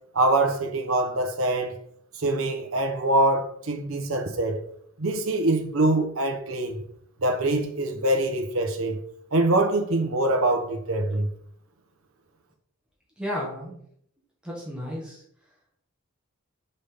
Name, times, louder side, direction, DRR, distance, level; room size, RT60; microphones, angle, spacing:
voice 1, 0.1-1.7 2.2-4.6 5.0-6.8 7.2-9.0 9.3-11.3, right 2 dB, 80° right, 0.9 m, -24 dB
voice 2, 13.2-13.8 14.4-15.2, equal, 5° right, 1.6 m, -33 dB
5.6 x 5.4 x 3.4 m
head